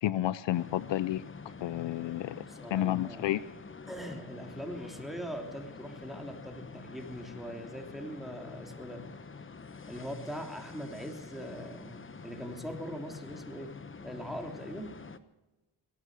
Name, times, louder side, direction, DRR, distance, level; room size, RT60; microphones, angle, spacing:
voice 1, 0.0-2.4 2.7-3.4, left 13 dB, 75° left, 17 dB, 0.6 m, -31 dB
sound 1, 0.5-15.2, left 4 dB, 30° left, 1.0 m, -47 dB
voice 2, 2.5-3.2 3.9-9.0 9.9-13.8 14.0-15.0, equal, ahead, 3 dB, 3.3 m, -41 dB
21.5 x 9.4 x 6.3 m, 1.1 s
cardioid pair, 65°, 44 cm